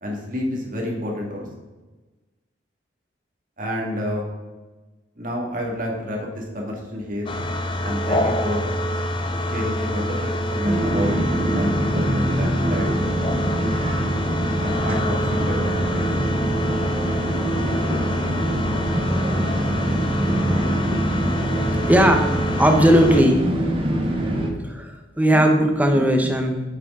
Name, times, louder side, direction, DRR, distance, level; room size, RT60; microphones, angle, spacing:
voice 1, 0.0-1.4 3.6-4.3 5.2-7.3 7.8-8.7 9.4-11.2 11.4-13.0 14.6-16.2, equal, 45° right, -1 dB, 2.0 m, -29 dB
sound 1, 7.3-23.2, left 1 dB, 30° left, 0.6 m, -26 dB
sound 2, 10.6-24.5, right 1 dB, 30° right, 1.1 m, -24 dB
voice 2, 21.5-23.4 24.6-26.6, right 1 dB, 10° right, 3 dB, 0.9 m, -18 dB
8.6 x 6.8 x 3.7 m, 1.2 s
head